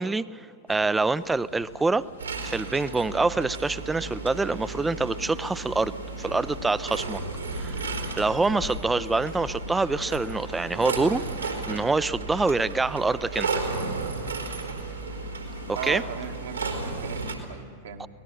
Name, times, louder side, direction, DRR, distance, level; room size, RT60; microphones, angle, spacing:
voice 1, 0.0-2.1 2.4-7.2 7.5-13.6 15.8-16.0 18.0-18.1, right 3 dB, 10° right, 17 dB, 0.5 m, -26 dB
sound 1, 0.7-17.4, left 5 dB, 70° left, 1.5 m, -43 dB
sound 2, 2.2-17.3, right 4 dB, 80° right, 3.7 m, -34 dB
voice 2, 15.7-16.8 17.0-18.1, right 8 dB, 60° right, 5 dB, 1.7 m, -37 dB
24.5 x 19.5 x 6.9 m, 2.3 s
figure-of-eight pair, 90°, 0 cm